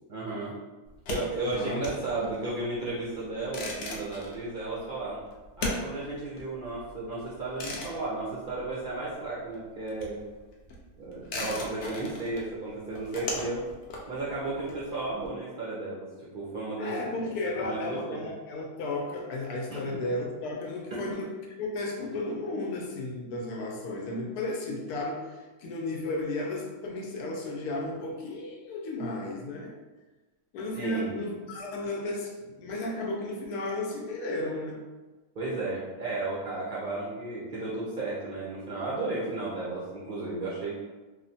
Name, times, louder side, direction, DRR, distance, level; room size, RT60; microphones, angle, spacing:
voice 1, 0.1-0.5 1.1-5.2 5.6-10.2 11.0-13.6 14.1-16.1 16.3-16.9 17.6-18.2 19.7-19.8 30.8-31.2 35.4-40.8, right 2 dB, 70° right, -8 dB, 0.5 m, -34 dB
sound 1, 0.9-9.2 9.5-15.3, left 2 dB, 65° left, 0.7 m, -39 dB
voice 2, 1.5-2.0 16.8-21.3 21.6-29.7 30.5-34.8, left 2 dB, 90° left, 0 dB, 1.1 m, -34 dB
3.0 x 2.1 x 2.6 m, 1.2 s
omnidirectional pair, 1.6 m